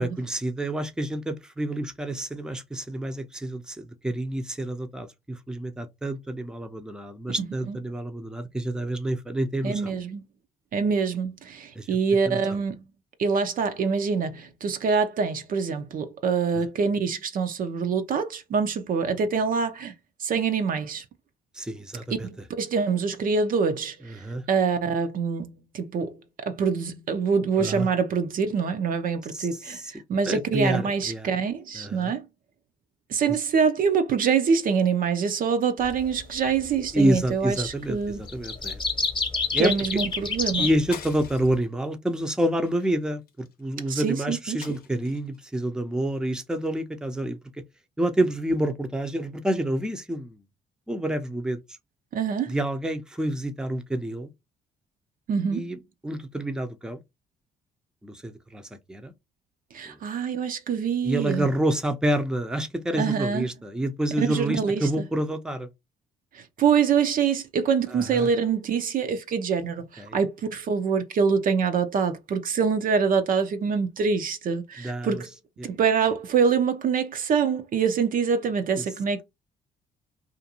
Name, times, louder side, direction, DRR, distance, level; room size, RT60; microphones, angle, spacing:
voice 1, 0.0-9.9 11.7-11.9 12.3-12.6 16.6-16.7 21.5-22.3 24.1-24.4 27.6-27.9 29.3-29.9 30.3-31.3 31.7-32.1 33.3-33.4 36.9-38.8 39.5-39.7 40.6-47.4 48.0-50.4 50.9-51.6 52.5-54.3 55.5-57.0 58.0-59.1 59.8-60.0 61.0-65.7 67.9-68.3 70.0-70.2 74.8-75.2 75.6-75.7, right 1 dB, 5° right, 0.6 m, -28 dB
voice 2, 9.6-10.2 10.7-12.8 13.2-19.9 20.2-21.0 22.2-32.2 33.1-38.2 39.6-40.7 43.9-44.8 52.1-52.6 55.3-55.6 59.7-61.5 63.0-63.5 64.2-64.9 66.3-75.3 75.6-79.2, right 6 dB, 50° right, 0.5 m, -25 dB
sound 1, 35.8-36.1 37.2-37.6 37.9-41.5, left 4 dB, 25° left, 0.9 m, -28 dB
sound 2, 40.9-41.7 42.1-42.3 42.6-43.6 44.6-45.4, left 7 dB, 55° left, 0.7 m, -44 dB
2.5 x 2.5 x 2.8 m
hypercardioid pair, 50°, 18 cm